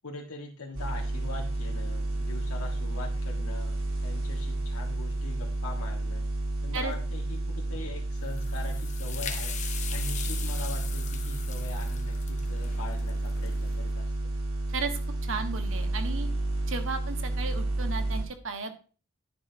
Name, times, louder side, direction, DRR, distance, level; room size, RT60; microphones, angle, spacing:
voice 1, 0.0-6.3 6.6-9.5 9.9-14.1, left 2 dB, 85° left, 0 dB, 1.8 m, -42 dB
sound 1, 0.7-18.2, right 2 dB, 80° right, 3.3 m, -31 dB
sound 2, 8.2-13.7, left 8 dB, 35° left, 1.0 m, -40 dB
voice 2, 14.7-16.3 16.7-18.8, right 4 dB, 65° right, 6 dB, 1.6 m, -35 dB
10.5 x 10.5 x 2.9 m, 0.38 s
head